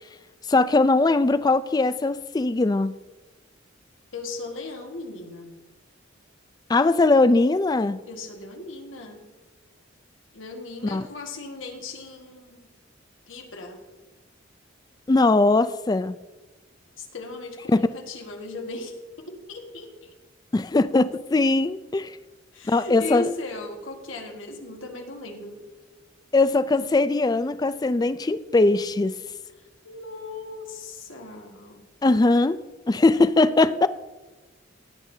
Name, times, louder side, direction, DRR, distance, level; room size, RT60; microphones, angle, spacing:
voice 1, 0.5-2.9 6.7-8.0 10.8-11.0 15.1-16.2 17.7-17.9 20.5-22.2 22.7-23.3 26.3-29.1 32.0-32.6 32.9-33.9, left 2 dB, 20° left, 0.3 m, -20 dB
voice 2, 4.1-5.5 8.1-9.2 10.3-12.6 13.3-13.8 17.0-18.9 19.3-20.1 22.5-25.6 29.6-31.8 33.7-33.9, left 3 dB, 85° left, 1.7 m, -37 dB
16.5 x 8.8 x 2.8 m
head